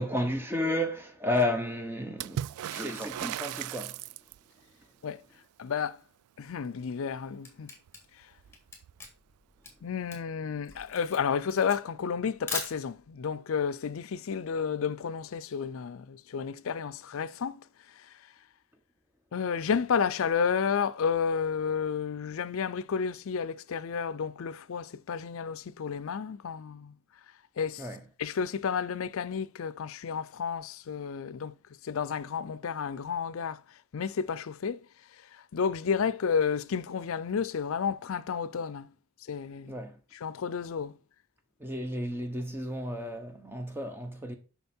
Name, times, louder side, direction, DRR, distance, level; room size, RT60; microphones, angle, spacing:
voice 1, 0.0-2.4 2.7-4.0 27.8-28.0 39.7-39.9 41.6-44.4, left 1 dB, 10° right, 0.9 m, -32 dB
Water / Splash splatter, 2.2-4.6 7.9-8.0 8.2-9.0 10.1-10.2, right 11 dB, 80° right, 0.3 m, -37 dB
voice 2, 5.6-6.0 6.4-7.7 8.2-8.3 9.8-17.6 17.9-18.2 19.3-26.9 27.6-27.9 28.2-31.5 31.8-34.9 35.3-38.9 39.3-39.8 40.1-41.0, left 6 dB, 60° left, 0.4 m, -31 dB
Camera, 7.0-13.2, left 4 dB, 10° left, 2.0 m, -41 dB
7.1 x 6.0 x 4.3 m
head